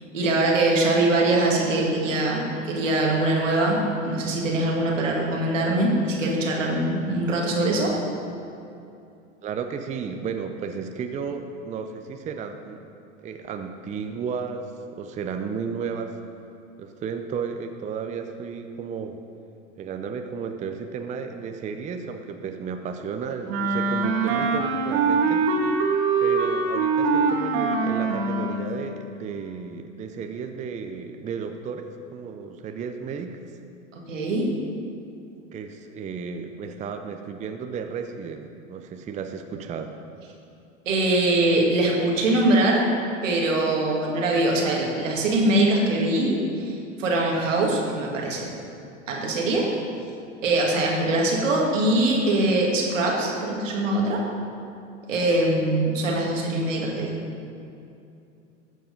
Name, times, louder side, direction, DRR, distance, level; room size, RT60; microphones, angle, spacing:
voice 1, 0.1-3.8 4.0-7.9 34.1-34.5 40.9-42.9 43.2-48.5 49.1-49.7 50.4-54.2 55.1-57.1, right 2 dB, 85° right, -1 dB, 2.0 m, -22 dB
voice 2, 9.4-12.9 13.2-16.2 16.8-19.2 19.8-25.4 26.2-31.9 32.1-33.4 35.5-39.9, right 6 dB, 20° right, 6 dB, 0.5 m, -33 dB
Wind instrument woodwind instrument, 23.5-28.7, right 4 dB, 60° right, 1.1 m, -23 dB
13.5 x 4.7 x 5.2 m, 2.6 s
hypercardioid pair, 95°, 37 cm